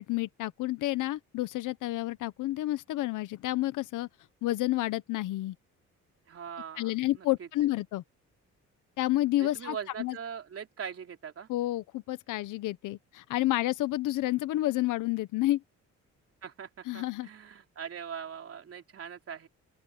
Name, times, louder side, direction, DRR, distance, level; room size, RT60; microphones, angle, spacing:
voice 1, 0.0-4.1 4.4-5.5 6.8-8.0 9.0-10.2 11.5-15.6 16.8-17.3, left 16 dB, 90° left, 1.0 m, -30 dB
voice 2, 6.3-7.5 9.4-11.5 16.4-19.5, right 7 dB, 50° right, 3.4 m, -41 dB
open air
cardioid pair, 90°, 30 cm